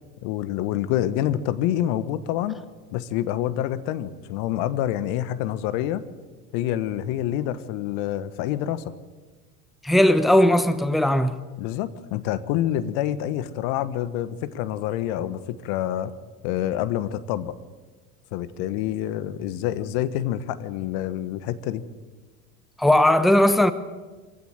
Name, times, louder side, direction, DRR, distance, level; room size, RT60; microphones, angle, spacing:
voice 1, 0.2-2.6 2.9-6.0 6.5-8.9 11.6-16.1 16.4-17.5 18.3-21.8, left 12 dB, 55° left, 1.4 m, -27 dB
voice 2, 9.8-11.4 22.8-23.7, left 1 dB, ahead, 1.0 m, -18 dB
24.0 x 16.0 x 7.8 m
hypercardioid pair, 75°, 44 cm